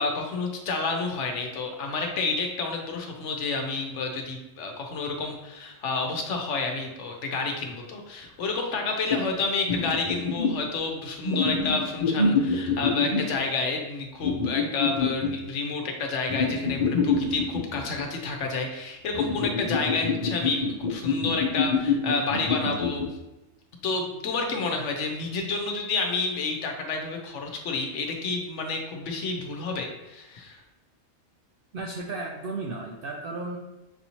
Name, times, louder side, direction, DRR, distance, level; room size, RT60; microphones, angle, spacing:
voice 1, 0.0-23.0 23.8-30.6, left 3 dB, 65° left, 2 dB, 0.9 m, -30 dB
sound 1, 9.1-9.2 9.7-10.6 11.2-13.4 14.2-15.3 16.3-18.0 19.1-23.1, left 4 dB, 45° left, 0.6 m, -26 dB
voice 2, 31.7-33.6, right 3 dB, 65° right, -1 dB, 0.5 m, -34 dB
6.1 x 2.7 x 2.9 m, 1.0 s
omnidirectional pair, 1.4 m